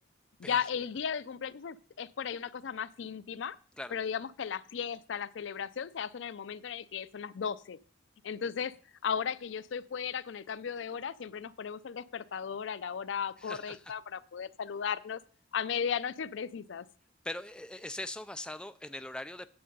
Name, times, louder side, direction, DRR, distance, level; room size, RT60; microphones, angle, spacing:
voice 1, 0.4-3.6 3.9-7.8 8.2-8.7 9.0-15.2 15.5-16.9, left 7 dB, 75° left, 17 dB, 0.4 m, -36 dB
voice 2, 13.4-13.9 17.2-19.5, left 1 dB, 5° left, 10 dB, 0.4 m, -41 dB
8.8 x 7.6 x 5.4 m, 0.43 s
head